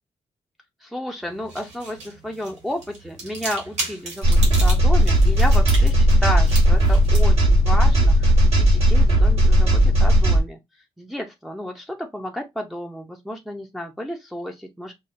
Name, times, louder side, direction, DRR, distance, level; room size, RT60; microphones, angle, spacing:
voice 1, 0.8-10.6 11.0-14.9, left 1 dB, ahead, 0.5 m, -32 dB
sound 1, 1.2-9.7, right 2 dB, 85° right, 1.9 m, -37 dB
sound 2, 4.2-10.4, equal, 55° right, 1.9 m, -16 dB
5.4 x 2.1 x 2.5 m
wide cardioid pair, 170°, 12 cm